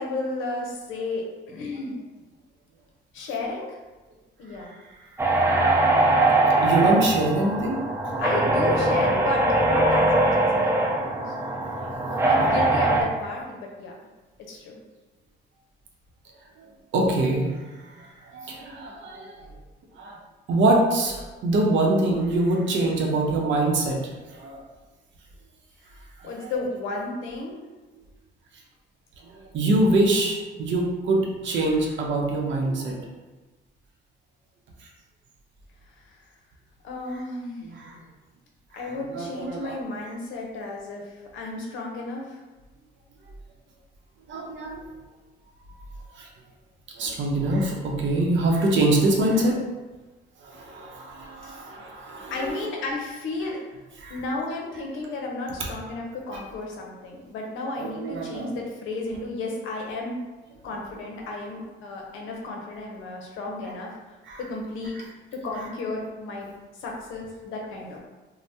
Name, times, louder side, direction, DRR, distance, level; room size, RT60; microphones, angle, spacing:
voice 1, 0.0-2.0 3.1-3.7 4.4-4.8 8.2-14.1 14.5-14.8 26.2-27.6 36.8-37.7 38.7-42.4 51.4-51.5 52.3-53.6 54.1-60.2 60.6-63.9 64.4-65.0 65.4-66.5 66.8-68.0, left 2 dB, 90° left, -1 dB, 0.6 m, -33 dB
sound 1, 5.2-13.0, right 2 dB, 10° right, 0.5 m, -21 dB
voice 2, 6.6-7.8 16.9-17.6 18.0-18.1 18.3-19.5 20.0-20.2 20.5-24.0 24.4-24.6 26.4-26.5 29.5-33.1 37.6-37.9 38.7-39.8 44.3-44.8 46.2-46.3 47.0-49.6 50.4-52.6 54.0-54.2 57.8-58.5 64.3-64.4 64.9-65.1, right 2 dB, 70° right, 0 dB, 0.7 m, -24 dB
2.7 x 2.1 x 3.3 m, 1.2 s
cardioid pair, 90°, 20 cm